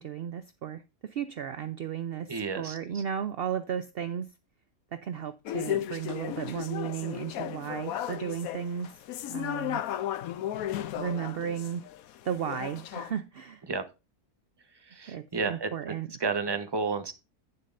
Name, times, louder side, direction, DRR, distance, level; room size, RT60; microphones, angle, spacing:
voice 1, 0.0-4.3 4.9-9.0 9.3-9.8 11.0-11.9 12.2-13.6 15.1-16.1, right 8 dB, 65° right, 0.6 m, -34 dB
voice 2, 2.3-3.0 13.7-13.8 14.9-15.7 16.2-17.1, right 4 dB, 20° right, 0.9 m, -31 dB
sound 1, 5.4-13.1, left 11 dB, 75° left, 1.1 m, -35 dB
10.5 x 9.4 x 2.6 m
omnidirectional pair, 1.6 m